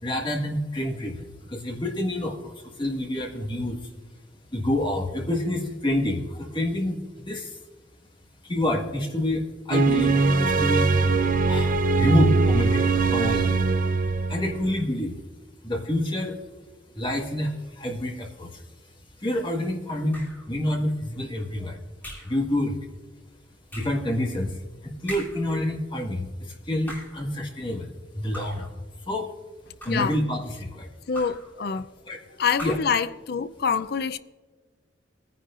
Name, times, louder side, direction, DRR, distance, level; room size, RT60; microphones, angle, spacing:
voice 1, 0.0-3.8 4.5-7.6 8.4-11.1 11.5-13.6 14.3-15.2 15.6-16.4 17.0-18.6 19.2-21.8 22.2-22.9 23.7-28.7 29.1-29.3 29.8-30.9 32.1-32.2 32.6-32.8, left 1 dB, 25° left, 1.7 m, -28 dB
sound 1, 9.7-14.9, right 4 dB, 45° right, 0.6 m, -21 dB
sound 2, 20.1-20.5 22.0-22.4 23.7-24.1 25.1-25.5 26.7-27.3 28.3-28.7 29.6-30.2 31.1-31.5 32.5-33.0, equal, 10° left, 3.0 m, -40 dB
voice 2, 31.1-31.9 32.4-34.2, left 6 dB, 55° left, 0.5 m, -26 dB
20.5 x 10.0 x 2.5 m
head